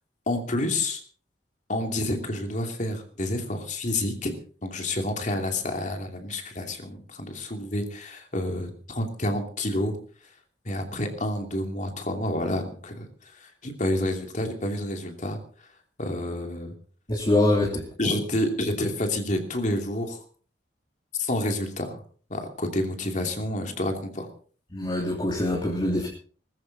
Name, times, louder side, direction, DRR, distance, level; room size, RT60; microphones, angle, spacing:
voice 1, 0.3-1.0 1.7-4.3 4.6-9.9 10.6-15.4 16.0-16.7 18.0-20.2 21.1-22.0 22.3-24.3, left 1 dB, 45° left, 4 dB, 2.8 m, -29 dB
voice 2, 17.1-17.8 24.7-26.1, left 1 dB, 25° left, -2 dB, 3.1 m, -24 dB
20.5 x 14.5 x 4.2 m, 0.43 s
head